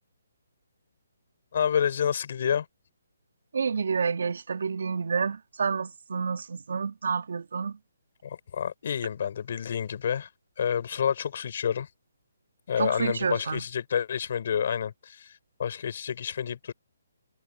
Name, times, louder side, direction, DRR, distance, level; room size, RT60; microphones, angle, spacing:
voice 1, 1.5-2.7 8.2-10.3 10.6-11.9 12.7-15.3 15.6-16.7, left 8 dB, 45° left, 4.8 m, -29 dB
voice 2, 3.5-7.8 12.8-13.6, right 5 dB, 65° right, 2.8 m, -29 dB
hypercardioid pair, 170°, 0 cm